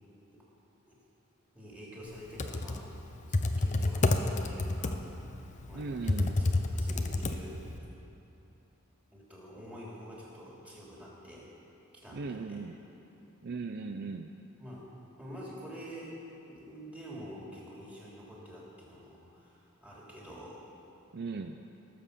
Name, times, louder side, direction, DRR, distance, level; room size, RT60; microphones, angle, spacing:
voice 1, 1.5-2.9 3.3-5.0 5.7-7.9 9.1-11.5 12.0-12.6 14.6-14.9 15.2-16.1 16.5-20.6, equal, 5° right, -6 dB, 3.1 m, -47 dB
Computer keyboard, 2.2-7.8, left 2 dB, 35° left, 0.6 m, -30 dB
voice 2, 5.7-6.4 12.1-12.8 13.4-14.3 21.1-21.6, right 4 dB, 50° right, 6 dB, 0.5 m, -38 dB
18.0 x 7.5 x 6.8 m, 2.9 s
head